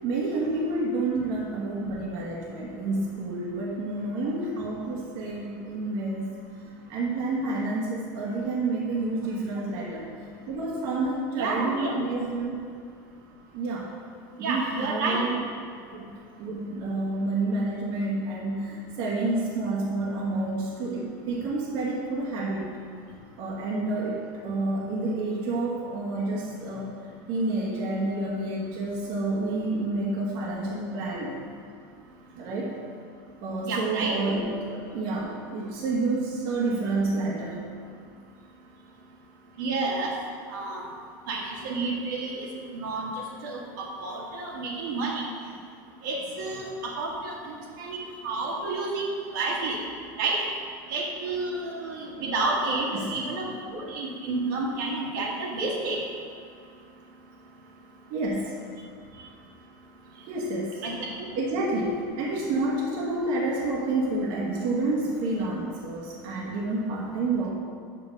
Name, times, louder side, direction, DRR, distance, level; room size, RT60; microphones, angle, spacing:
voice 1, 0.0-6.3 6.9-10.1 10.5-12.6 13.5-13.9 14.4-15.4 15.9-22.7 23.4-26.9 27.3-31.3 32.3-32.8 33.4-37.6 52.9-53.1 58.1-58.5 60.3-60.8 61.3-67.5, right 2 dB, 55° right, -4 dB, 1.3 m, -29 dB
voice 2, 11.3-11.9 14.4-15.2 33.6-34.1 39.6-40.1 40.5-40.8 41.3-43.1 43.4-45.2 46.0-49.0 49.3-49.8 50.2-50.4 50.9-56.0 60.8-61.0, right 3 dB, 80° right, -2 dB, 1.7 m, -30 dB
6.0 x 5.4 x 6.3 m, 2.2 s
supercardioid pair, 150°, 10 cm